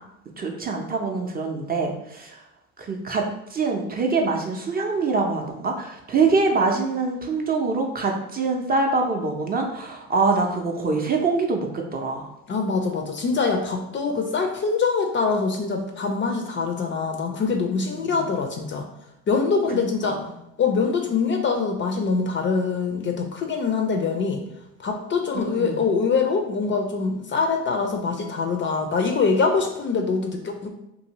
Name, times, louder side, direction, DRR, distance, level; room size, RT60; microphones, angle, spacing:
voice 1, 0.4-2.4 2.8-3.2 3.5-12.3 17.9-18.2 19.7-20.2 25.3-25.8, right 4 dB, 25° right, 1 dB, 0.5 m, -24 dB
voice 2, 12.5-18.9 19.3-20.2 20.6-24.4 24.8-30.7, left 4 dB, 35° left, 4 dB, 0.4 m, -24 dB
2.6 x 2.6 x 2.9 m, 0.86 s
supercardioid pair, 80°, 35 cm